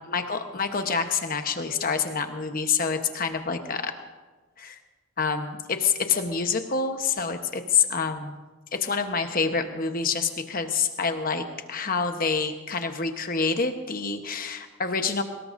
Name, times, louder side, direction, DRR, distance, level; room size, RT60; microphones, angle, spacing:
voice 1, 0.0-3.9 4.6-4.8 5.2-8.4 8.7-15.2, left 5 dB, 40° left, 7 dB, 1.1 m, -27 dB
23.0 x 20.0 x 2.7 m, 1.3 s
head